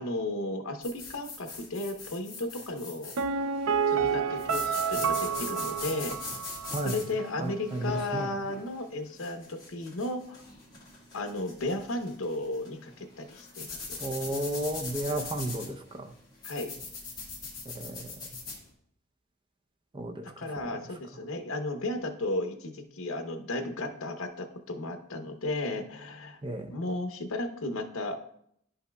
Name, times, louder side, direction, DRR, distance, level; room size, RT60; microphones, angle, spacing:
voice 1, 0.0-3.1 3.9-6.2 6.8-10.4 11.1-14.0 15.1-15.2 16.4-16.7 20.4-26.4 26.7-28.1, left 2 dB, 70° left, 6 dB, 0.9 m, -34 dB
sound 1, 0.8-18.6, left 4 dB, 20° left, 1.8 m, -42 dB
Piano, 3.2-6.9 7.2-7.3, right 6 dB, 80° right, 0.4 m, -29 dB
voice 2, 7.4-8.3 14.0-16.1 17.7-18.3 19.9-20.8 26.4-26.8, right 1 dB, 25° right, 4 dB, 0.6 m, -34 dB
11.0 x 5.5 x 2.3 m, 0.68 s
head